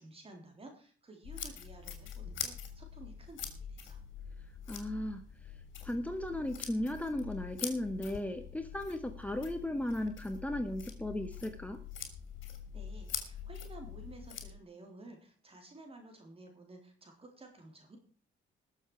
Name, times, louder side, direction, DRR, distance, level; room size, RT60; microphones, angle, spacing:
voice 1, 0.0-4.0 12.7-18.0, right 2 dB, 30° right, 3 dB, 3.5 m, -53 dB
sound 1, 1.2-14.5, left 7 dB, 70° left, 3.1 m, -44 dB
voice 2, 4.7-5.2 5.8-11.8, left 1 dB, 5° left, 7 dB, 1.3 m, -36 dB
19.5 x 7.3 x 4.8 m, 0.42 s
cardioid pair, 90°, 20 cm